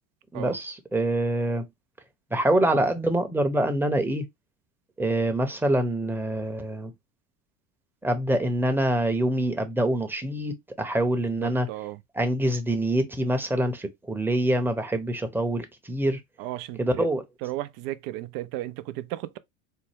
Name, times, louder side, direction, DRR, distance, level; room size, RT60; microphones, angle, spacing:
voice 1, 0.3-1.7 2.3-4.2 5.0-6.9 8.0-11.7 12.1-16.2 16.8-17.2, right 1 dB, 5° right, 0.8 m, -25 dB
voice 2, 11.4-12.0 16.4-17.1 17.4-19.4, right 15 dB, 60° right, 0.6 m, -34 dB
4.3 x 2.2 x 3.3 m
hypercardioid pair, 80°, 39 cm